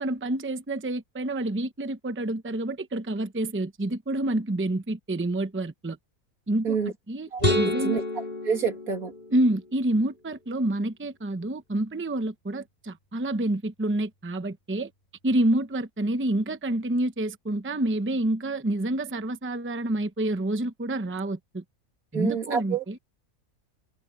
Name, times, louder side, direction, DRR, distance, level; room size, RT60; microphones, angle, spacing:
voice 1, 0.0-6.0 6.5-6.8 7.1-7.3 7.5-8.0 9.3-14.9 15.2-21.6 22.1-23.0, right 1 dB, 10° right, 0.7 m, -28 dB
voice 2, 7.3-8.0 8.4-9.1 22.1-22.8, right 6 dB, 85° right, 3.2 m, -27 dB
sound 1, 7.4-9.8, left 1 dB, 30° left, 5.1 m, -29 dB
omnidirectional pair, 1.5 m